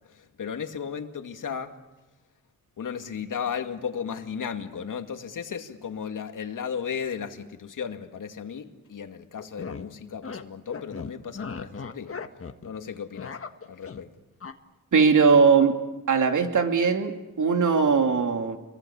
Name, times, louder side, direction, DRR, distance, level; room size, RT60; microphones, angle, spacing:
voice 1, 0.1-1.8 2.8-12.2 12.6-13.4 13.7-14.1, left 7 dB, 65° left, 2.4 m, -35 dB
sound 1, 9.4-9.9 10.2-10.4 10.7-12.7 12.9-14.0 14.4-14.5, left 5 dB, 40° left, 1.6 m, -37 dB
voice 2, 14.9-15.8 16.1-18.6, right 5 dB, 60° right, 2.9 m, -20 dB
28.5 x 23.5 x 7.2 m
cardioid pair, 85°, 34 cm